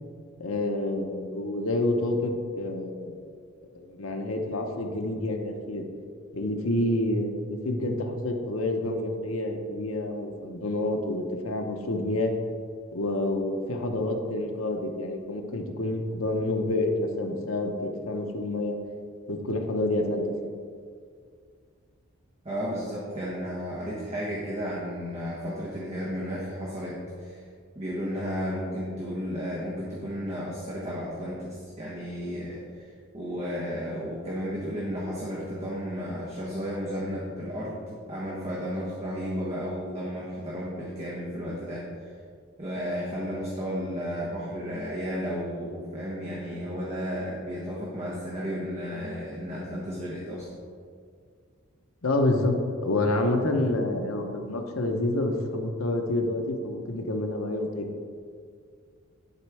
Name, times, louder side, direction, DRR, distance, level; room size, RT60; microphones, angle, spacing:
voice 1, 0.4-3.2 3.7-5.8 6.3-12.3 12.9-18.8 19.3-20.5 52.0-57.9, left 1 dB, 80° left, 4 dB, 0.9 m, -28 dB
voice 2, 22.4-27.4 27.7-41.9 42.6-50.5, equal, 30° right, -6 dB, 1.3 m, -33 dB
11.5 x 4.3 x 4.8 m, 2.1 s
head